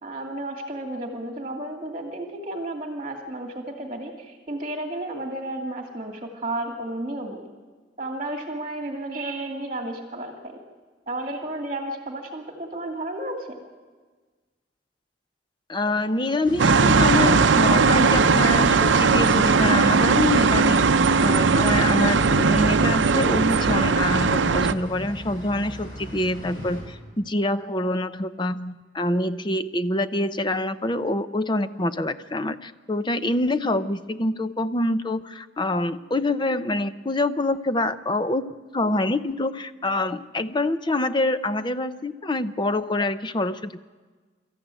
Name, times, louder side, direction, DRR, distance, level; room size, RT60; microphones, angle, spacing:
voice 1, 0.0-7.4 8.0-10.6 11.1-13.6, right 1 dB, 30° right, 2 dB, 2.3 m, -32 dB
voice 2, 15.7-20.8 21.2-43.8, left 2 dB, 25° left, 12 dB, 0.6 m, -26 dB
sound 1, 16.4-26.8, equal, 45° left, 6.7 m, -39 dB
sound 2, 16.6-24.7, right 4 dB, 70° right, 0.6 m, -19 dB
24.0 x 14.0 x 9.1 m, 1.4 s
head